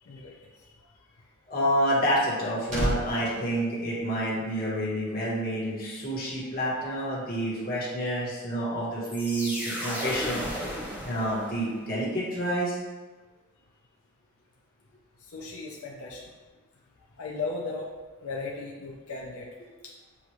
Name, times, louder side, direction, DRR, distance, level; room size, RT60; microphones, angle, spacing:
voice 1, 0.0-0.8 15.3-16.3 17.2-17.9 18.2-19.5 19.8-19.9, left 3 dB, 85° left, -3 dB, 0.6 m, -36 dB
voice 2, 1.5-10.4 11.0-12.8, equal, 40° left, -6 dB, 1.3 m, -28 dB
sound 1, 2.2-4.6 4.9-5.2, equal, 35° right, 1.1 m, -34 dB
sound 2, 9.0-11.8, equal, 5° right, 0.7 m, -34 dB
7.0 x 2.4 x 3.1 m, 1.3 s
head